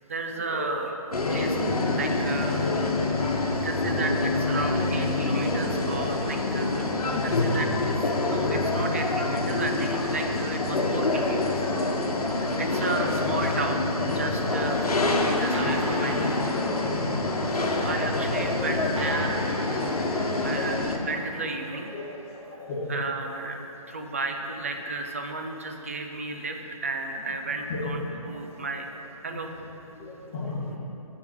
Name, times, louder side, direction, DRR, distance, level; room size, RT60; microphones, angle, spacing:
voice 1, 0.0-0.9 1.3-1.6 1.9-2.7 3.6-7.9 8.2-11.7 12.0-16.4 17.5-19.4 19.7-21.9 22.9-28.9 29.2-29.5, right 3 dB, 25° right, 4 dB, 0.4 m, -33 dB
sound 1, 1.1-21.0, left 2 dB, 85° left, 1.1 m, -26 dB
voice 2, 2.4-2.8 3.1-3.3 3.6-3.7 4.1-4.2 4.8-4.9 6.8-6.9 8.1-8.2 10.6-11.1 12.4-12.9 16.9-17.0 17.6-17.9 18.6-18.7 20.5-20.7 21.9-22.0 22.3-22.9 27.7-27.8 29.3-29.4 29.9-30.8, left 3 dB, 20° left, -14 dB, 1.9 m, -37 dB
sound 2, 15.5-22.4, equal, 55° right, 1.7 m, -40 dB
7.2 x 4.8 x 7.1 m, 2.9 s
hypercardioid pair, 165°, 19 cm